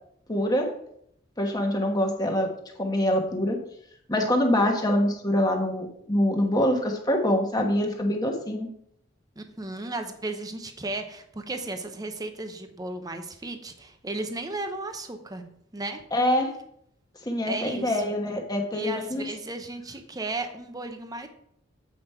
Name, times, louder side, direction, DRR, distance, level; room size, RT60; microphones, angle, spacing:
voice 1, 0.3-0.7 1.4-2.5 2.8-3.6 4.1-8.7 16.1-16.5 17.2-19.2, left 1 dB, 20° left, 2 dB, 1.2 m, -25 dB
voice 2, 9.4-16.0 17.5-18.0 18.7-21.3, right 2 dB, 20° right, 6 dB, 0.7 m, -35 dB
7.9 x 5.2 x 4.4 m, 0.70 s
head